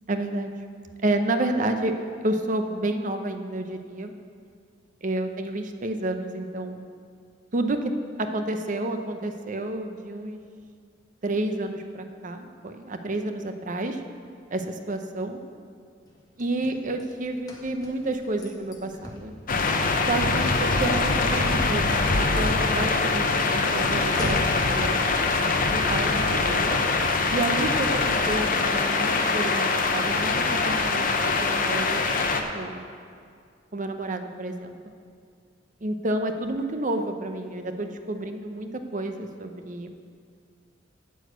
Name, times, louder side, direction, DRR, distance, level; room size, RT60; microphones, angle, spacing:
voice 1, 0.1-0.5 1.0-4.1 5.0-6.8 7.5-7.9 8.2-10.4 11.2-14.0 14.5-15.4 16.4-19.3 20.1-25.0 25.7-26.8 27.3-31.1 31.4-32.3 32.5-32.8 33.7-34.7 35.8-40.0, right 2 dB, 40° right, 7 dB, 0.7 m, -30 dB
Car / Slam, 16.1-24.7, left 1 dB, 20° left, 1.4 m, -40 dB
sound 1, 19.5-32.4, left 3 dB, 45° left, 0.7 m, -23 dB
9.2 x 6.4 x 8.1 m, 2.2 s
head